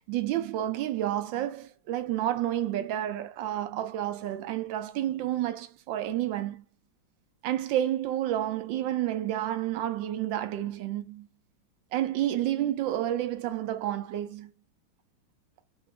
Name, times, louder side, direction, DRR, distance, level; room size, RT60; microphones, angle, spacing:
voice 1, 0.1-6.6 7.4-11.3 11.9-14.5, right 12 dB, 75° right, 1.2 m, -30 dB
3.9 x 2.7 x 3.4 m
omnidirectional pair, 2.3 m